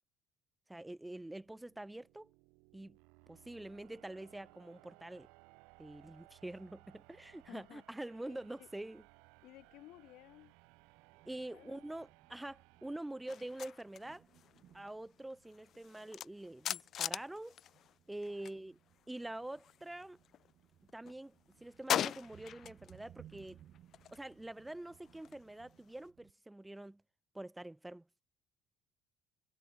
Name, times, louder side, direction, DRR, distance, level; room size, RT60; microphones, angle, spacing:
voice 1, 0.7-2.3 2.7-3.0 3.3-5.3 5.8-9.0 11.2-14.3 14.7-17.6 18.1-18.8 19.1-20.2 20.9-21.3 21.6-23.6 24.1-27.0 27.3-28.0, right 1 dB, 5° right, 1.0 m, -46 dB
sound 1, 1.2-14.0, right 31 dB, 85° right, 2.5 m, -64 dB
Thunder, 7.0-26.3, right 12 dB, 50° right, 3.5 m, -65 dB
voice 2, 7.5-7.8 8.3-8.7 9.4-10.5 11.5-11.8 18.3-18.5, left 17 dB, 65° left, 0.8 m, -57 dB
sound 2, 13.3-18.6 18.9-20.5 20.9-23.0 23.3-26.1, left 10 dB, 45° left, 0.3 m, -42 dB
cardioid pair, 125°, 0 cm